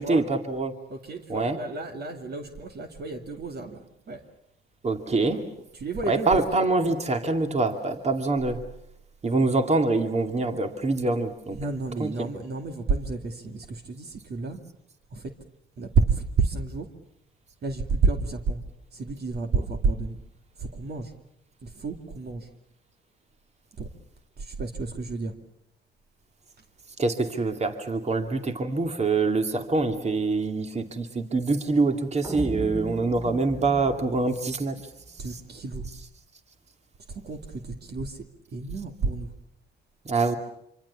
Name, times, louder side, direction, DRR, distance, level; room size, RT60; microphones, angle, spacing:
voice 1, 0.0-0.7 1.3-1.6 4.8-5.4 6.1-8.6 9.2-11.6 12.0-12.3 27.0-34.8 40.1-40.4, right 3 dB, 35° right, 6 dB, 2.5 m, -25 dB
voice 2, 0.9-4.3 5.2-5.4 5.7-6.5 11.5-14.6 15.1-15.4 15.8-16.9 17.6-20.2 20.6-21.1 21.6-22.5 23.8-23.9 24.4-25.3 35.2-35.9 37.1-38.2 38.5-39.3, right 4 dB, 55° right, 5 dB, 2.6 m, -30 dB
sound 1, 32.2-35.3, right 1 dB, 15° right, 2.6 m, -37 dB
26.0 x 25.5 x 7.1 m, 0.77 s
cardioid pair, 90°, 20 cm